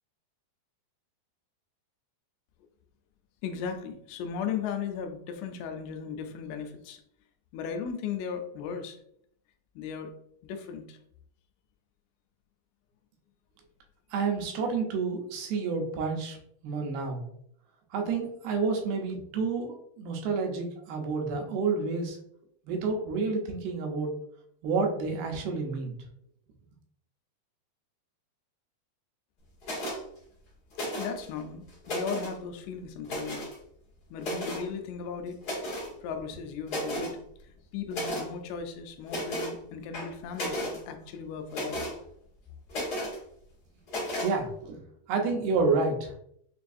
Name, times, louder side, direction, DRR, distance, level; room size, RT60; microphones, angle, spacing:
voice 1, 3.4-7.0 7.5-9.0 9.8-10.1 10.4-11.0 31.0-33.5 34.1-35.4 36.0-41.9, left 6 dB, 85° left, 5 dB, 2.5 m, -36 dB
voice 2, 14.1-16.4 16.6-17.2 17.9-22.2 22.7-24.1 24.6-25.9 44.2-44.8 45.1-46.1, right 4 dB, 85° right, 1 dB, 2.7 m, -29 dB
sound 1, 29.6-30.0 30.7-31.2 31.7-32.3 33.0-33.5 34.2-34.6 35.4-35.9 36.3-36.4 36.7-37.1 37.9-38.3 39.1-39.5 39.9-40.8 41.5-41.9 42.7-43.2 43.9-44.3, equal, 70° left, 0.9 m, -33 dB
6.2 x 2.4 x 2.5 m, 0.69 s
omnidirectional pair, 4.3 m